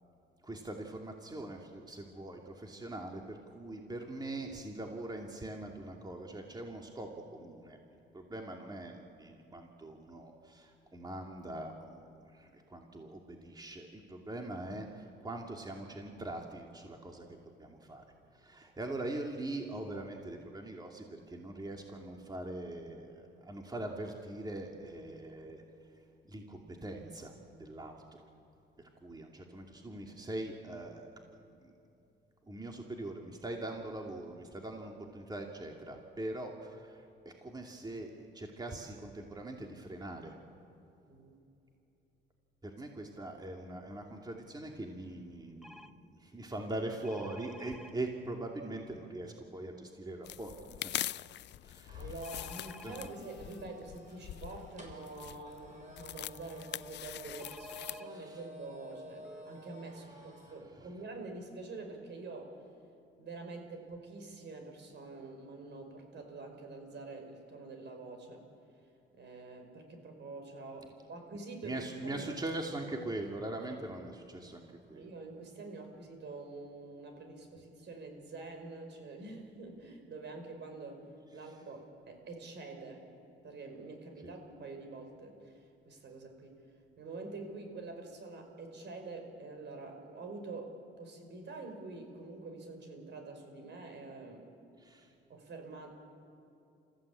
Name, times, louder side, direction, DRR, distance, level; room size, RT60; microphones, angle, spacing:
voice 1, 0.4-7.8 8.1-12.1 12.3-17.3 17.6-18.0 18.3-25.6 26.3-27.3 27.6-28.0 29.0-31.1 31.6-31.7 32.5-40.3 42.6-51.0 51.6-52.1 52.8-52.9 58.1-58.4 60.8-60.9 71.6-75.1 94.8-95.1, right 2 dB, 20° right, 1 dB, 2.6 m, -42 dB
sound 1, 45.6-45.9 47.0-47.9 52.2-53.1 57.4-58.1 58.9-59.0 59.2-59.4, left 1 dB, ahead, 1.0 m, -52 dB
sound 2, 50.2-58.0, left 13 dB, 60° left, 0.4 m, -43 dB
sound 3, 51.9-60.6, equal, 40° right, 6.5 m, -53 dB
voice 2, 52.0-62.6 63.2-68.4 69.1-72.3 74.9-83.0 83.4-86.6 87.0-94.5 95.3-95.9, right 3 dB, 60° right, 5 dB, 5.3 m, -46 dB
29.0 x 15.5 x 8.6 m, 2.8 s
cardioid pair, 90°, 20 cm